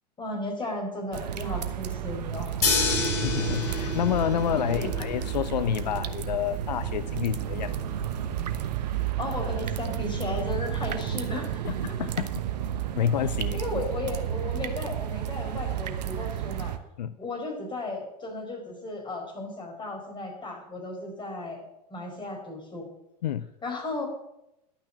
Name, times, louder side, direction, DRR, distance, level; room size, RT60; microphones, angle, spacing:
voice 1, 0.2-2.5 4.6-5.0 9.0-12.1 13.5-16.7 17.2-21.6 21.9-22.9 23.6-24.1, left 2 dB, 20° left, 1 dB, 4.9 m, -35 dB
sound 1, 1.1-16.8, right 10 dB, 75° right, 1.0 m, -31 dB
sound 2, 2.6-8.6, left 4 dB, 50° left, 5.9 m, -31 dB
voice 2, 3.2-7.8 11.6-12.3 13.0-13.6 17.0-17.2 23.2-23.5, left 10 dB, 80° left, 14 dB, 0.6 m, -29 dB
11.5 x 6.0 x 8.9 m, 0.86 s
hypercardioid pair, 90°, 21 cm